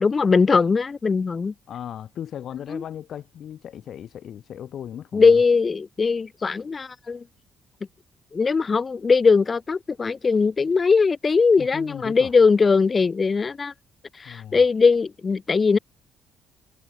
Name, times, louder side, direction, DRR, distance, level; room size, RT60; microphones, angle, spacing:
voice 1, 0.0-1.5 2.7-2.8 5.1-7.2 8.3-13.7 14.2-15.8, left 4 dB, 35° left, 1.7 m, -20 dB
voice 2, 1.7-5.4 11.6-12.3 14.3-14.6, left 10 dB, 65° left, 6.8 m, -37 dB
cardioid pair, 90°, 0 cm